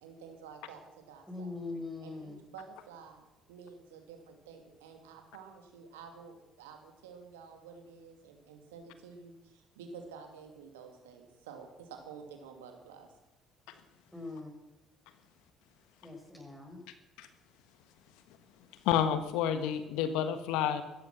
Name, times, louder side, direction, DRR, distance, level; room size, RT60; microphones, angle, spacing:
voice 1, 0.0-1.5 2.0-13.1, right 5 dB, 85° right, 4 dB, 2.5 m, -50 dB
voice 2, 1.3-2.4 14.1-14.6 16.0-16.8, left 3 dB, 5° left, 1 dB, 7.0 m, -42 dB
voice 3, 18.8-20.8, left 9 dB, 75° left, 10 dB, 1.3 m, -29 dB
15.5 x 14.0 x 6.2 m, 0.97 s
hypercardioid pair, 55°, 0 cm